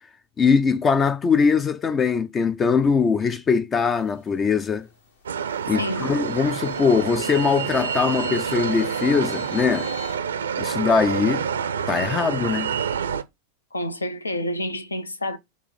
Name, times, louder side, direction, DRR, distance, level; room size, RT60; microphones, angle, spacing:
voice 1, 0.4-4.9 5.7-9.9 10.6-11.5 11.9-12.8, left 5 dB, 20° left, 0.4 m, -21 dB
sound 1, 3.9-5.1 5.7-10.2, left 1 dB, 60° left, 1.2 m, -40 dB
sound 2, 5.3-13.2, right 7 dB, 70° right, 0.5 m, -28 dB
voice 2, 5.8-6.1 13.7-15.4, left 1 dB, 80° left, 0.7 m, -28 dB
6.0 x 3.1 x 5.3 m
figure-of-eight pair, 90°, 0 cm